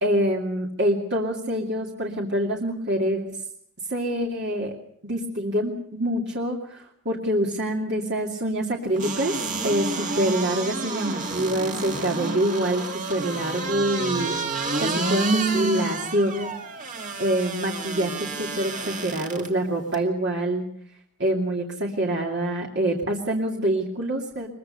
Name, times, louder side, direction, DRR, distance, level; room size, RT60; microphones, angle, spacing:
voice 1, 0.0-3.4 3.9-4.7 5.0-9.3 9.6-14.4 14.8-16.5 17.2-20.7 21.2-24.5, right 1 dB, 50° right, -1 dB, 2.7 m, -26 dB
sound 1, 9.0-19.5 19.9-20.0, right 3 dB, 35° right, 2.3 m, -29 dB
22.5 x 22.0 x 6.7 m, 0.67 s
head